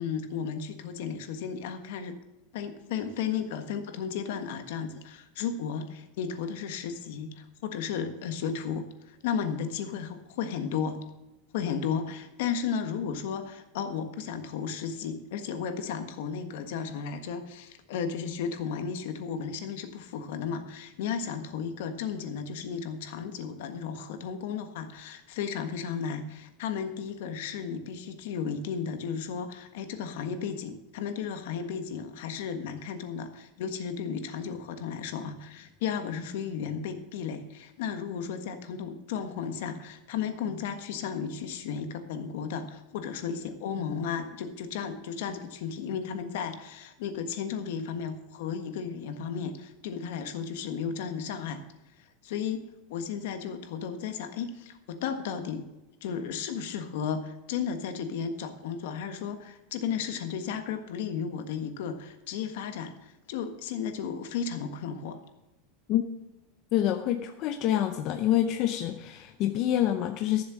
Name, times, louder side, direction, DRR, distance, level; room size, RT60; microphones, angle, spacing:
voice 1, 0.0-2.2 2.5-11.0 11.5-51.6 52.0-52.6 52.9-55.7 56.0-65.2, left 7 dB, 60° left, 8 dB, 1.5 m, -34 dB
voice 2, 66.7-70.4, left 12 dB, 35° left, 6 dB, 0.6 m, -27 dB
13.5 x 7.5 x 6.2 m, 0.98 s
supercardioid pair, 175°, 0 cm